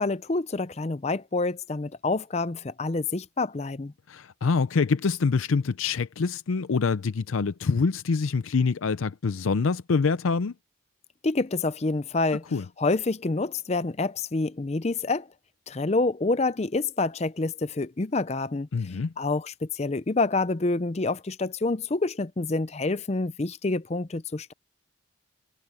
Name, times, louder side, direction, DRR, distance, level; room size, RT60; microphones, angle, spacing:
voice 1, 0.0-3.9 11.2-12.5 12.8-15.3 15.7-18.7 19.2-24.5, left 3 dB, 30° left, 0.5 m, -27 dB
voice 2, 4.1-10.5 12.5-12.6 18.7-19.1, left 4 dB, 80° left, 0.5 m, -25 dB
head